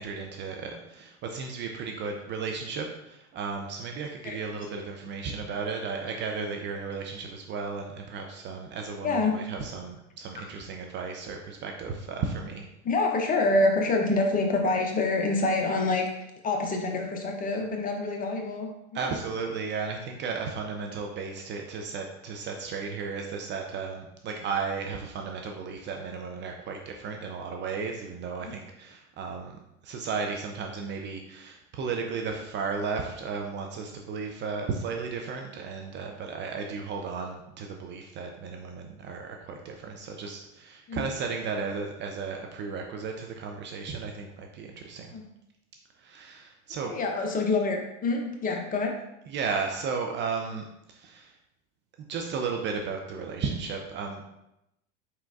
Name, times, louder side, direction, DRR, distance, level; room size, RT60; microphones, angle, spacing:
voice 1, 0.0-12.6 18.9-45.1 46.0-46.9 49.3-51.3 52.1-54.2, right 5 dB, 30° right, 2 dB, 0.5 m, -34 dB
voice 2, 9.0-9.4 12.8-16.1 16.4-19.2 28.4-28.5 40.9-41.1 45.1-45.3 46.8-49.0, left 3 dB, 25° left, 2 dB, 0.6 m, -26 dB
4.3 x 3.9 x 2.4 m, 0.86 s
hypercardioid pair, 105°, 37 cm